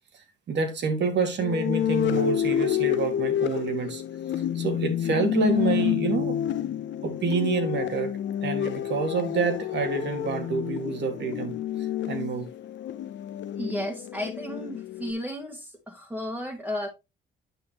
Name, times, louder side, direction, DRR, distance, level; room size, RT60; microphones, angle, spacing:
voice 1, 0.5-4.0 4.6-6.4 7.0-11.6 12.1-12.5, right 4 dB, 60° right, 2.2 m, -27 dB
sound 1, 1.4-15.1, left 11 dB, 65° left, 0.7 m, -29 dB
voice 2, 13.6-16.9, equal, 5° right, 1.7 m, -33 dB
9.1 x 6.1 x 2.9 m
cardioid pair, 90°, 20 cm